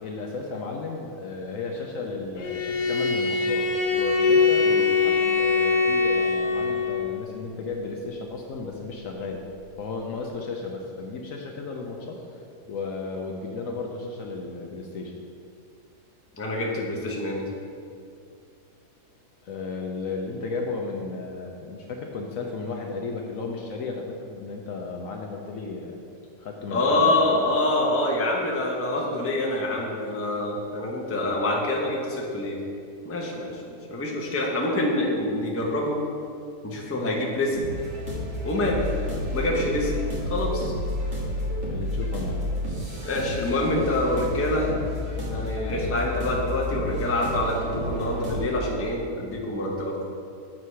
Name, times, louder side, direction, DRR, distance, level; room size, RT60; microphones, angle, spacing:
voice 1, 0.0-4.7 5.0-9.4 9.8-12.2 12.6-15.2 19.4-26.0 26.4-27.3 41.7-42.4, left 4 dB, 65° left, 1 dB, 1.0 m, -34 dB
Bowed string instrument, 2.4-7.1, left 4 dB, 85° left, 1.5 m, -22 dB
voice 2, 16.3-17.4 26.7-32.6 33.0-36.0 36.6-37.6 38.4-38.8 39.3-39.9 40.3-40.7 43.0-44.7 45.2-50.1, left 1 dB, 15° left, -2 dB, 0.6 m, -26 dB
sound 1, 37.5-48.5, left 1 dB, 50° right, 2.1 m, -30 dB
7.6 x 4.8 x 5.6 m, 2.4 s
omnidirectional pair, 1.8 m